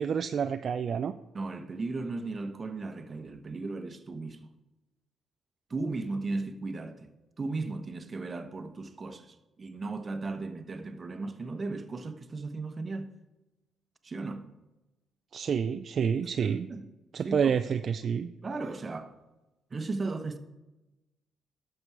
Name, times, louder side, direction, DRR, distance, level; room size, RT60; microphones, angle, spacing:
voice 1, 0.0-1.2 15.3-16.7 17.1-18.3, right 7 dB, 55° right, 0.4 m, -28 dB
voice 2, 1.3-4.5 5.7-7.1 7.4-13.1 14.0-14.4 16.4-16.9 17.2-17.5 18.4-19.2 19.7-20.4, right 3 dB, 35° right, 0.9 m, -36 dB
11.5 x 6.8 x 4.7 m
cardioid pair, 90°, 0 cm